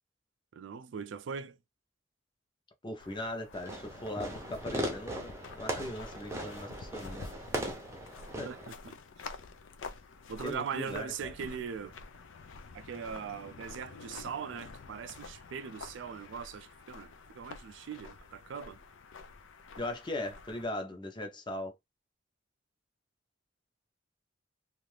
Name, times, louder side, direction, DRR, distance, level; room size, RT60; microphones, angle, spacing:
voice 1, 0.5-1.6 8.4-8.9 9.2-9.3 10.3-12.0 12.7-18.8, right 6 dB, 70° right, 0.3 m, -40 dB
voice 2, 2.8-7.3 8.4-8.5 10.4-11.3 19.8-21.7, left 1 dB, 25° left, 0.7 m, -39 dB
sound 1, 3.0-20.6, left 4 dB, 85° left, 0.5 m, -49 dB
Fireworks, 3.5-8.7, right 1 dB, 15° right, 0.6 m, -38 dB
2.6 x 2.4 x 3.2 m
head